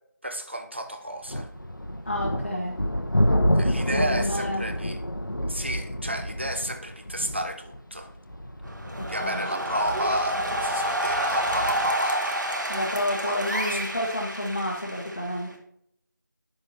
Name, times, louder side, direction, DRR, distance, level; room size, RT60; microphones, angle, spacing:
voice 1, 0.2-1.5 3.5-5.0 5.5-8.1 9.1-12.4 13.2-13.9, right 1 dB, 35° right, 6 dB, 0.6 m, -32 dB
sound 1, 1.2-11.9, equal, 70° left, 1.1 m, -29 dB
voice 2, 2.0-2.8 3.9-4.6 9.2-9.4 12.7-15.5, left 1 dB, 35° left, -4 dB, 1.1 m, -29 dB
sound 2, 8.7-15.5, right 1 dB, 65° right, 1.6 m, -29 dB
9.9 x 6.4 x 2.9 m, 0.71 s
figure-of-eight pair, 175°, 11 cm